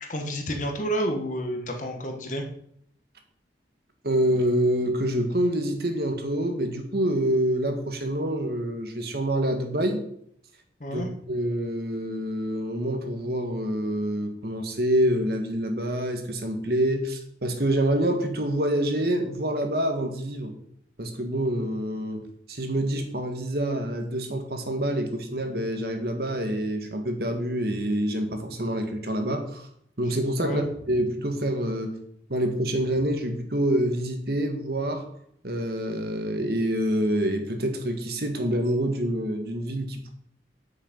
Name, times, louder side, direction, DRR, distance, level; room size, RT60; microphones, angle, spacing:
voice 1, 0.1-2.5 10.8-11.1 30.4-30.6, equal, 45° left, 3 dB, 1.6 m, -29 dB
voice 2, 4.0-10.0 10.9-20.5 21.0-22.2 22.5-29.6 30.0-31.9 32.3-35.0 35.4-40.1, right 1 dB, 60° right, 5 dB, 1.6 m, -26 dB
8.9 x 6.5 x 5.4 m, 0.69 s
head